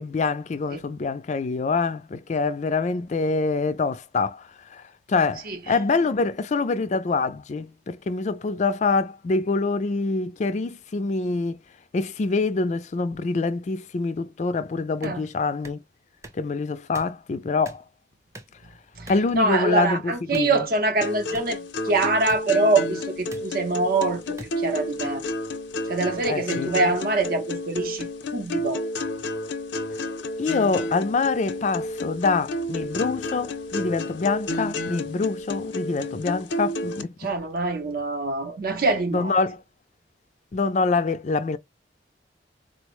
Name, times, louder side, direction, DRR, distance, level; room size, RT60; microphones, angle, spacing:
voice 1, 0.0-4.8 5.1-11.6 11.9-15.8 16.3-17.8 19.1-20.7 26.2-26.7 30.4-37.3 39.1-39.6 40.5-41.6, left 4 dB, 40° left, 0.3 m, -25 dB
sound 1, 15.0-15.2 15.6-15.8 16.2-16.4 16.9-17.1 17.7-17.8 18.3-18.6 19.1-19.3 20.3-20.5 21.3-21.5 22.3-22.4 23.3-23.4 24.4-24.5, right 1 dB, 15° right, 0.6 m, -41 dB
voice 2, 19.0-25.2 25.9-28.8 37.2-39.3, right 3 dB, 55° right, 0.6 m, -24 dB
sound 2, 21.0-37.0, left 1 dB, 85° left, 0.6 m, -31 dB
4.0 x 2.0 x 3.0 m
head